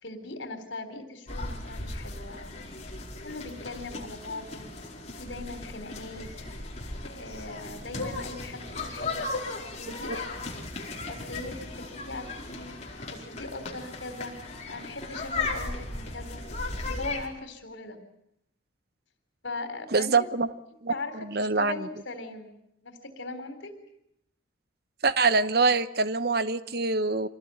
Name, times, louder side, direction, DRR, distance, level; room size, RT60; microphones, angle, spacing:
voice 1, 0.0-2.6 3.2-4.8 5.2-6.4 7.0-10.5 11.1-12.8 13.1-14.4 14.7-16.4 16.8-18.0 19.4-20.3 20.9-22.6 22.8-23.7, left 2 dB, 75° left, 8 dB, 3.9 m, -40 dB
sound 1, 1.3-17.3, left 3 dB, 35° left, 4.6 m, -37 dB
voice 2, 19.9-20.5 20.8-21.9 25.0-27.3, right 4 dB, 55° right, 13 dB, 0.9 m, -25 dB
25.5 x 19.5 x 9.1 m, 0.78 s
head